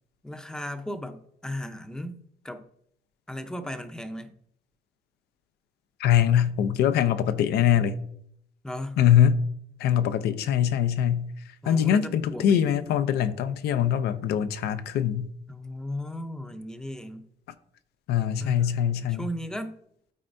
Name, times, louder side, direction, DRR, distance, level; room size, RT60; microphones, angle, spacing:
voice 1, 0.2-2.2 2.4-2.7 3.3-4.4 8.6-9.0 11.6-12.7 15.5-17.3 18.4-18.8 19.1-19.8, left 1 dB, 5° left, 0.6 m, -36 dB
voice 2, 6.0-8.0 9.0-9.4 9.8-11.3 11.7-15.3 18.1-19.3, left 9 dB, 75° left, 0.6 m, -23 dB
12.0 x 4.4 x 2.6 m
cardioid pair, 110°, 17 cm